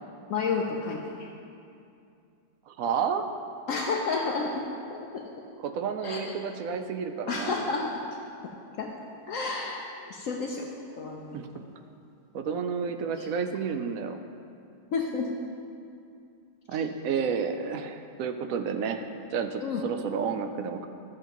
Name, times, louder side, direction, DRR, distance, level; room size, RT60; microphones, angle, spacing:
voice 1, 0.3-1.3 3.7-4.6 4.9-5.2 6.0-6.3 7.3-8.0 8.8-8.9 9.3-10.7 10.9-11.4 13.2-13.3 14.9-15.3 19.6-19.8, left 4 dB, 65° left, 0 dB, 0.9 m, -31 dB
voice 2, 2.7-3.3 5.6-7.6 11.3-11.5 12.3-14.2 16.7-20.9, right 6 dB, 70° right, 7 dB, 0.9 m, -31 dB
13.0 x 7.6 x 3.0 m, 2.5 s
omnidirectional pair, 1.8 m